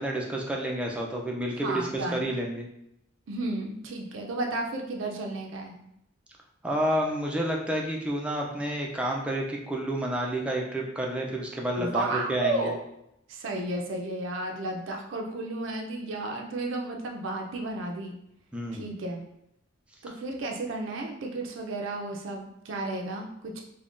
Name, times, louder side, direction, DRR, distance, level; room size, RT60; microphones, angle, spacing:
voice 1, 0.0-2.7 6.6-12.7 18.5-18.9, right 1 dB, 5° right, -1 dB, 0.3 m, -30 dB
voice 2, 1.6-2.3 3.3-5.8 11.8-12.8 13.3-18.2 18.7-19.2 20.0-23.6, right 2 dB, 70° right, 1 dB, 0.4 m, -33 dB
3.5 x 2.1 x 2.5 m, 0.79 s
head